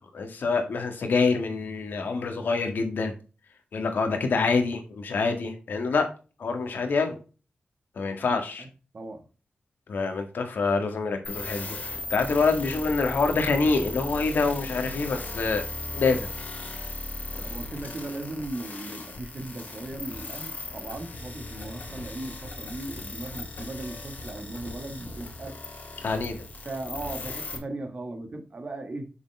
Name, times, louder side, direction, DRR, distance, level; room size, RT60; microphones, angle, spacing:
voice 1, 0.1-3.1 3.7-6.1 6.4-7.2 8.0-8.6 9.9-15.6 15.9-16.3 17.4-17.5 26.0-26.4, left 4 dB, 90° left, 5 dB, 1.9 m, -26 dB
voice 2, 8.3-8.7 8.9-9.3 17.4-25.6 26.6-29.1, right 2 dB, 50° right, 6 dB, 1.8 m, -37 dB
sound 1, 11.2-27.6, left 2 dB, 60° left, 2.5 m, -37 dB
7.0 x 6.5 x 3.5 m, 0.34 s
wide cardioid pair, 105°, 3 cm